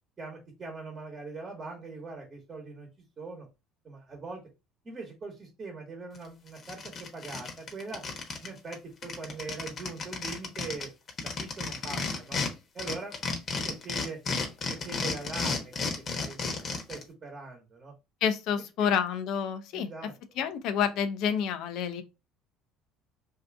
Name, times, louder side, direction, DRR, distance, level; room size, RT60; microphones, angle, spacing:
voice 1, 0.2-2.9 3.2-3.5 3.8-4.4 4.8-8.0 8.4-10.9 11.2-12.4 12.7-13.2 13.6-14.2 14.7-15.9 16.2-16.4 16.9-17.9 18.8-18.9 19.7-20.1, right 3 dB, 35° right, 1.1 m, -41 dB
sound 1, 6.1-6.2 6.6-8.5 8.7-8.8 9.0-12.5 12.8-17.0, left 4 dB, 45° left, 0.9 m, -32 dB
voice 2, 18.2-19.9 20.4-22.0, left 7 dB, 65° left, 0.5 m, -28 dB
2.7 x 2.4 x 3.4 m
supercardioid pair, 80°, 0 cm